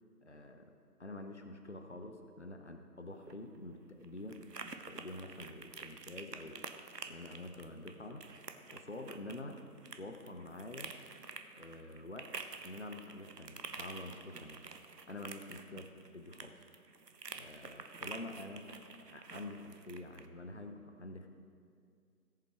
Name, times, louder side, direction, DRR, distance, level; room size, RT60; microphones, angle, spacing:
voice 1, 0.2-0.7 1.0-6.7 7.1-8.3 8.7-9.6 9.9-10.9 11.5-12.3 12.6-14.6 15.1-15.9 16.1-16.6 17.3-18.7 19.0-21.3, left 2 dB, 45° left, 5 dB, 0.8 m, -47 dB
sound 1, 3.1-20.3, right 4 dB, 90° right, 1.0 m, -49 dB
17.0 x 7.2 x 4.6 m, 2.3 s
figure-of-eight pair, 180°, 47 cm